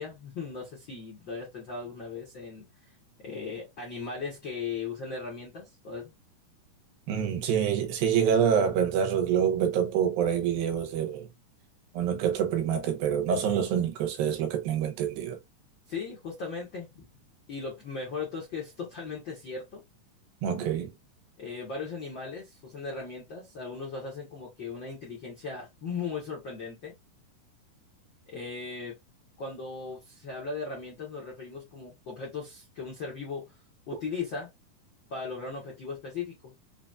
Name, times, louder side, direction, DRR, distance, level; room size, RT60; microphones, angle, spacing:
voice 1, 0.0-2.6 3.2-6.1 15.9-17.0 17.5-19.8 21.4-26.9 28.3-29.0 29.4-33.6 33.9-34.5 35.1-36.5, left 4 dB, 70° left, 1.1 m, -37 dB
voice 2, 7.1-11.3 11.9-15.4 20.4-20.9, right 8 dB, 90° right, 2.6 m, -26 dB
5.8 x 2.3 x 2.4 m
omnidirectional pair, 4.0 m